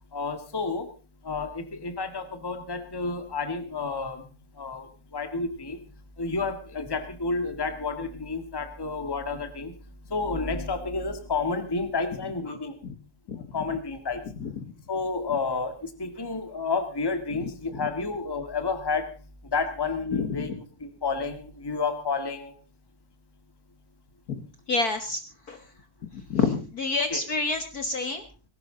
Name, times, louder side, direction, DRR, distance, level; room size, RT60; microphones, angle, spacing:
voice 1, 0.1-0.9 1.2-4.2 4.6-5.8 6.2-9.7 10.1-12.8 13.5-14.3 14.9-19.1 19.5-20.5 20.8-22.5 27.1-27.2, left 4 dB, 10° left, 8 dB, 1.5 m, -30 dB
voice 2, 17.4-17.9 20.1-20.6 24.3-24.4 24.7-25.2 25.5-25.6 26.1-28.2, left 4 dB, 50° left, 8 dB, 1.6 m, -28 dB
19.0 x 17.0 x 3.8 m, 0.33 s
omnidirectional pair, 2.4 m